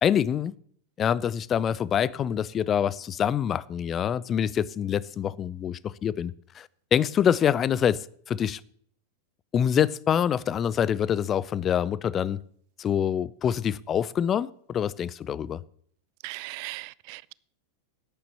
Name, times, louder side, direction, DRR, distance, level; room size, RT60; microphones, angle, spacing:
voice 1, 0.0-0.5 1.0-8.6 9.5-12.4 12.8-15.6, left 9 dB, 25° left, 0.5 m, -26 dB
voice 2, 16.2-17.3, right 24 dB, 45° right, 0.4 m, -38 dB
10.5 x 8.9 x 8.3 m
figure-of-eight pair, 90°, 0 cm